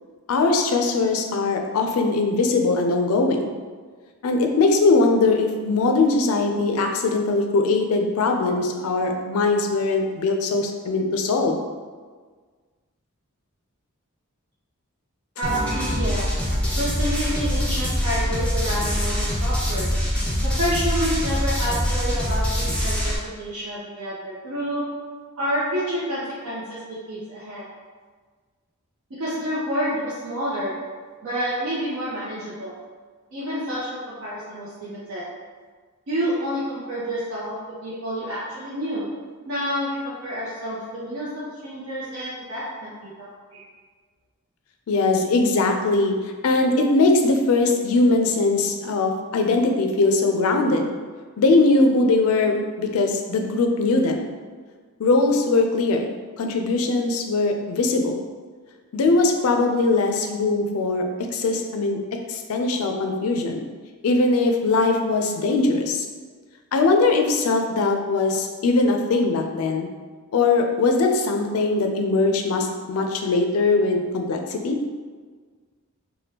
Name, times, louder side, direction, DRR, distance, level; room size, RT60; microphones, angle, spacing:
voice 1, 0.3-3.5 4.2-11.6 44.9-46.1 46.4-50.9 51.4-54.3 55.0-56.1 56.4-58.2 58.9-62.0 62.3-63.6 64.0-66.1 66.7-69.9 70.3-74.8, left 3 dB, 70° left, 4 dB, 0.4 m, -21 dB
sound 1, 15.4-23.2, equal, 5° left, 0.5 m, -24 dB
voice 2, 15.4-16.3 16.7-19.9 20.4-24.9 25.4-26.8 27.1-27.7 29.2-30.8 31.2-32.8 33.3-35.3 36.1-37.6 37.8-39.1 39.5-43.6, equal, 65° right, -9 dB, 0.7 m, -29 dB
3.4 x 2.2 x 2.8 m, 1.5 s
head